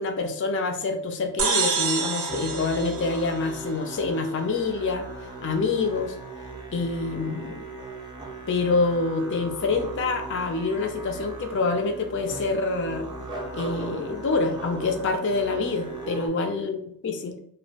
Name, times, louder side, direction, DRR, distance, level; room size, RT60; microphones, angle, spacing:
voice 1, 0.0-5.0 5.4-6.1 6.7-7.6 8.5-13.1 13.5-17.4, left 3 dB, 55° left, 5 dB, 0.4 m, -26 dB
sound 1, 1.4-4.0, right 5 dB, 80° right, 0.5 m, -28 dB
Musical instrument, 2.3-16.3, right 2 dB, 20° right, 0.4 m, -38 dB
2.2 x 2.0 x 2.8 m, 0.68 s
head